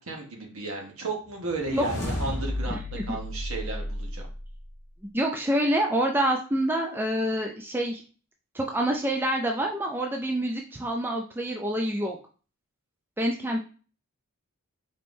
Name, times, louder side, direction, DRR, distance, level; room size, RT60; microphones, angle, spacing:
voice 1, 0.0-4.2, right 3 dB, 70° right, 1 dB, 1.2 m, -34 dB
sound 1, 1.4-4.6, left 1 dB, 15° left, 1.2 m, -33 dB
voice 2, 2.7-3.2 5.1-8.0 8.5-12.2 13.2-13.6, right 1 dB, 10° right, 2 dB, 0.3 m, -27 dB
4.2 x 3.5 x 2.6 m, 0.37 s
head